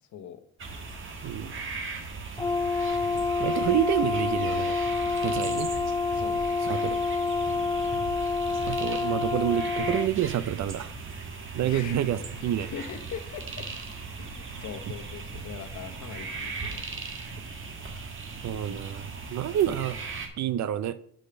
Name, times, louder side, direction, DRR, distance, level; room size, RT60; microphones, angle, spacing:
sound 1, 0.6-20.3, right 4 dB, 40° right, 1.6 m, -38 dB
Brass instrument, 2.4-10.1, left 4 dB, 15° left, 0.3 m, -28 dB
voice 1, 3.4-4.8 5.2-5.7 6.6-7.0 8.7-10.9 11.5-12.7 18.4-20.0 20.4-21.0, right 11 dB, 65° right, 0.7 m, -28 dB
voice 2, 6.1-6.6 11.6-12.0 12.4-13.7 14.2-17.0, left 8 dB, 70° left, 1.1 m, -41 dB
6.5 x 5.0 x 6.8 m
cardioid pair, 90°, 30 cm